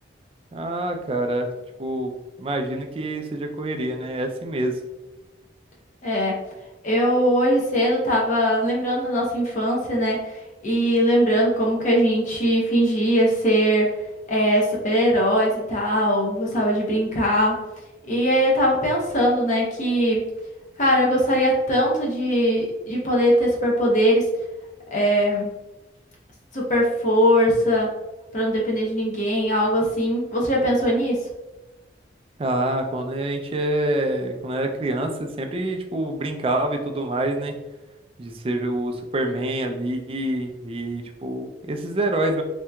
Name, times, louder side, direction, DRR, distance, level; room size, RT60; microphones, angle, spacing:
voice 1, 0.5-1.5 1.8-2.1 2.4-4.8 32.4-37.6 38.2-42.4, right 1 dB, 30° right, 4 dB, 0.3 m, -26 dB
voice 2, 6.0-6.4 6.8-10.2 10.6-13.9 14.3-17.6 18.1-20.2 20.8-24.3 24.9-25.5 26.5-27.9 28.3-31.2, equal, 40° left, -3 dB, 0.6 m, -21 dB
3.3 x 2.8 x 2.3 m, 1.0 s
head